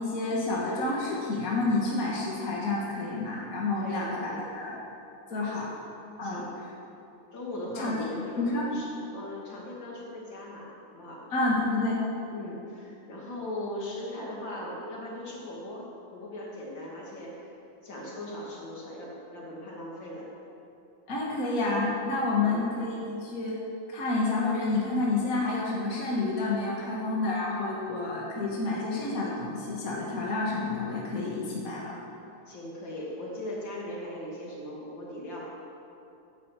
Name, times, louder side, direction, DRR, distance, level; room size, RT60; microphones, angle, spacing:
voice 1, 0.0-4.8 5.3-5.7 6.2-6.4 7.8-8.0 8.4-8.8 11.3-12.0 21.1-23.6 23.9-32.0, left 3 dB, 45° left, -4 dB, 1.9 m, -29 dB
voice 2, 3.7-4.4 5.5-5.6 6.2-6.5 7.3-11.2 12.3-15.9 16.1-17.5 17.8-20.3 22.4-22.6 32.5-35.5, left 1 dB, 60° left, -4 dB, 3.2 m, -39 dB
11.0 x 9.8 x 7.5 m, 2.8 s
omnidirectional pair, 2.3 m